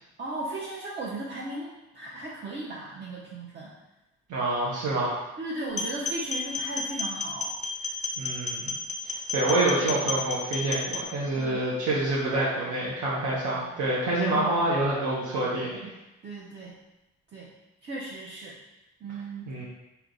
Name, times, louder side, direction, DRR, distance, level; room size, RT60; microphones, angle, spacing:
voice 1, 0.2-3.7 5.4-7.5 11.4-11.6 14.2-14.7 16.2-16.8 17.3-17.5 17.8-18.6 19.0-19.5, right 2 dB, 40° right, -5 dB, 0.7 m, -36 dB
voice 2, 4.3-5.2 8.2-8.7 9.3-15.9 19.5-19.7, right 2 dB, 80° right, -6 dB, 0.9 m, -27 dB
sound 1, 5.7-11.0, left 3 dB, 25° left, 0.6 m, -32 dB
3.3 x 3.0 x 3.8 m, 0.97 s
cardioid pair, 90°, 30 cm